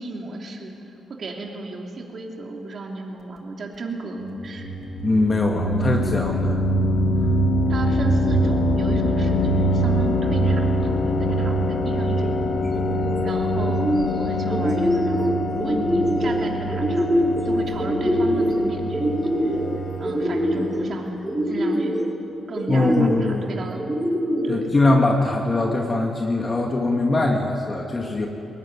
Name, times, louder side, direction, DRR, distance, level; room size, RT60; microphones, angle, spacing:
voice 1, 0.0-4.7 7.7-12.7 13.2-13.9 14.2-19.6 20.0-21.2 21.5-22.0 22.5-23.9 24.4-24.7, right 2 dB, 50° right, 1 dB, 3.0 m, -34 dB
sound 1, 4.2-20.9, equal, 65° left, 2.7 m, -24 dB
voice 2, 5.0-6.6 22.7-23.4 24.5-28.3, left 2 dB, 30° left, 1 dB, 2.1 m, -21 dB
sound 2, 12.6-13.1 13.5-14.2 14.5-15.2 15.6-16.3 16.7-17.4 17.8-18.6 18.9-19.6 20.0-20.8 21.2-22.0 22.5-23.2 23.8-24.6, equal, 10° right, 6.1 m, -24 dB
21.5 x 19.0 x 9.9 m, 2.8 s
cardioid pair, 100°, 0 cm